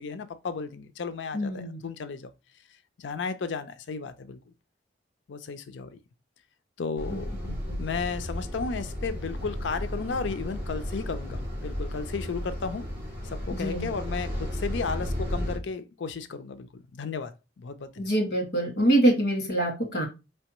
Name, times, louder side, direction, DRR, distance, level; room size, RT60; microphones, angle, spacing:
voice 1, 0.0-2.3 3.0-4.4 5.3-5.9 6.8-7.3 7.8-12.9 13.2-18.1, left 5 dB, 90° left, 0.5 m, -34 dB
voice 2, 1.3-1.8 7.1-7.2 7.4-7.8 13.5-13.9 18.0-20.1, right 1 dB, 60° left, 1.9 m, -25 dB
sound 1, 7.0-15.6, left 1 dB, 10° right, 2.4 m, -34 dB
4.6 x 3.3 x 3.0 m
head